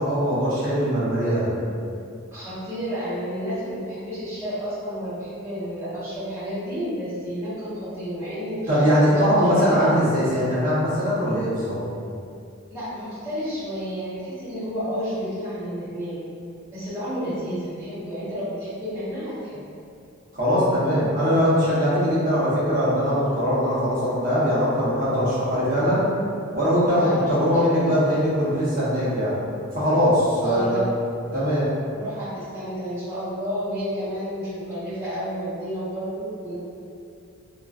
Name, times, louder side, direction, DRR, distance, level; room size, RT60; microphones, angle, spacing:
voice 1, 0.0-1.5 8.7-11.8 20.3-26.1 26.5-29.4 29.7-30.8 31.3-31.7, equal, 40° right, -10 dB, 0.8 m, -21 dB
voice 2, 2.3-9.9 12.7-16.2 16.7-19.7 26.9-28.2 30.4-30.8 31.9-36.6, equal, 15° right, -14 dB, 1.0 m, -31 dB
2.4 x 2.2 x 2.3 m, 2.4 s
head